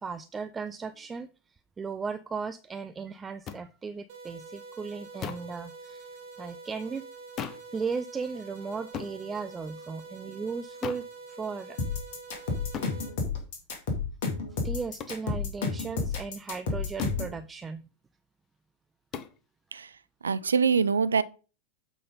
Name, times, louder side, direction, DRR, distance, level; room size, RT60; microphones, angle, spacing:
voice 1, 0.0-1.3 1.8-6.1 6.4-7.1 7.7-11.9 13.2-13.3 14.6-17.9, right 5 dB, 15° right, 0.4 m, -36 dB
sound 1, 3.5-3.6 5.2-5.5 7.4-7.7 8.9-9.2 10.8-11.1 12.7-13.0 15.0-15.2 17.0-17.2 19.1-19.4, left 8 dB, 30° left, 0.8 m, -37 dB
sound 2, 4.1-13.1, right 4 dB, 50° right, 1.8 m, -46 dB
sound 3, 11.8-17.4, left 4 dB, 50° left, 2.2 m, -30 dB
voice 2, 20.2-21.2, right 5 dB, 70° right, 0.5 m, -24 dB
8.5 x 3.9 x 5.2 m
figure-of-eight pair, 90°, 0 cm